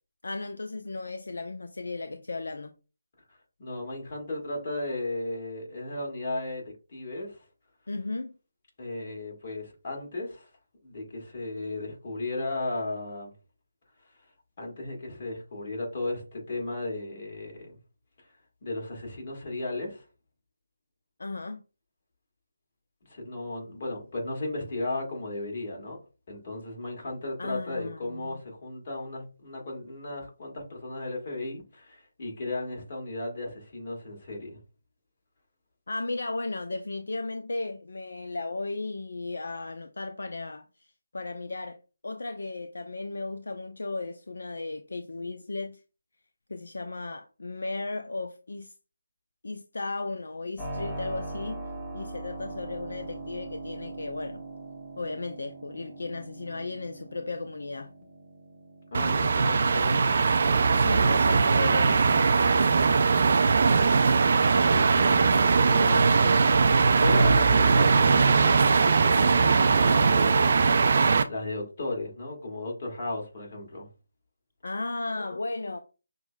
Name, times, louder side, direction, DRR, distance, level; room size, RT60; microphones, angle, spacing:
voice 1, 0.2-2.7 7.9-8.3 21.2-21.6 27.4-28.4 35.9-40.9 41.1-41.8 42.0-45.8 46.5-48.7 49.4-51.7 51.9-54.4 55.0-57.9 60.8-62.3 74.6-75.8, left 3 dB, 65° left, 0.3 m, -35 dB
voice 2, 3.3-7.4 8.8-10.5 10.8-13.3 14.6-17.6 18.6-20.0 23.1-26.0 26.3-34.6 58.9-60.1 64.2-73.9, left 2 dB, 40° left, 1.6 m, -35 dB
Keyboard (musical), 50.6-63.3, right 2 dB, ahead, 0.9 m, -42 dB
sound 1, 58.9-71.2, right 4 dB, 45° right, 0.4 m, -21 dB
6.1 x 2.1 x 2.2 m
figure-of-eight pair, 155°, 0 cm